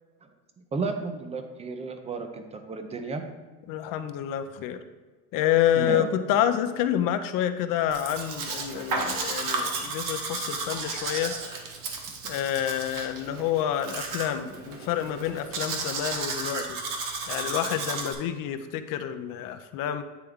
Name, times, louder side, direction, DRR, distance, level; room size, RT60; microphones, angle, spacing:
voice 1, 0.7-3.2 5.7-6.1, right 4 dB, 15° right, 7 dB, 0.4 m, -32 dB
voice 2, 3.7-4.8 5.3-11.3 12.2-16.8 17.3-20.0, left 10 dB, 50° left, 10 dB, 0.5 m, -28 dB
Domestic sounds home sounds, 7.9-18.1, right 4 dB, 45° right, 1.1 m, -33 dB
9.2 x 3.3 x 3.6 m, 1.3 s
supercardioid pair, 130°, 45 cm